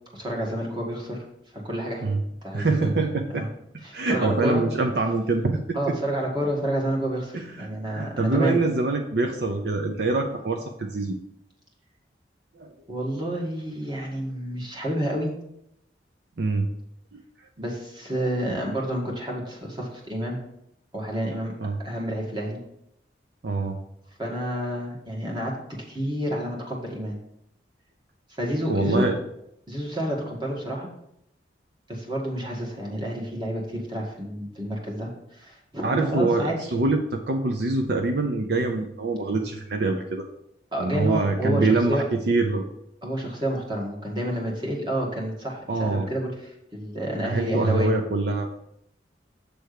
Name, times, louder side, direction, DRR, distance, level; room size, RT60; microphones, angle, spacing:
voice 1, 0.1-1.2 1.5-2.1 2.4-2.9 3.3-3.5 3.8-4.7 5.7-8.6 12.9-15.3 17.6-20.4 20.9-21.5 21.8-22.6 24.2-27.1 28.4-29.1 29.7-30.9 31.9-36.6 40.7-42.0 43.0-47.9, equal, 25° right, -1 dB, 1.6 m, -29 dB
voice 2, 2.5-3.4 3.9-5.6 7.3-7.7 7.9-11.1 12.6-12.7 16.4-16.7 17.1-17.2 21.6-21.8 23.4-23.8 28.7-29.2 35.8-40.2 40.8-42.6 45.7-46.1 47.2-48.6, right 3 dB, 60° right, 4 dB, 0.6 m, -24 dB
7.8 x 3.4 x 6.5 m, 0.79 s
head